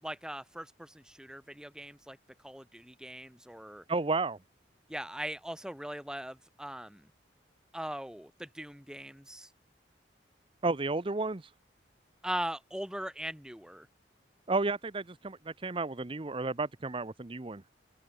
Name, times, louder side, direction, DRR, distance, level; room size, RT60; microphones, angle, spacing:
voice 1, 0.0-2.2 2.4-3.8 4.9-7.1 7.7-9.5 12.2-13.9, right 1 dB, 5° right, 2.6 m, -40 dB
voice 2, 3.9-4.4 10.6-11.5 14.5-17.6, right 3 dB, 30° right, 0.8 m, -32 dB
open air
head